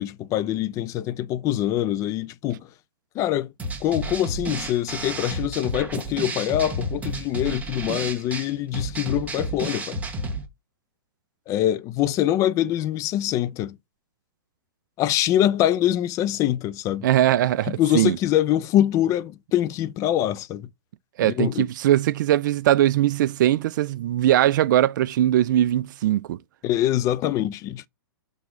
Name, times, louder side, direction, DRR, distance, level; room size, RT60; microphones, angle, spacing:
voice 1, 0.0-2.7 3.1-3.5 3.8-10.0 11.5-13.8 15.0-17.1 17.7-20.7 21.2-21.7 26.6-27.9, left 12 dB, 25° left, 0.4 m, -24 dB
sound 1, 3.6-10.5, right 2 dB, 10° right, 1.2 m, -31 dB
voice 2, 17.0-18.2 21.2-26.4, right 13 dB, 55° right, 0.4 m, -20 dB
6.0 x 3.5 x 5.8 m
hypercardioid pair, 130°, 13 cm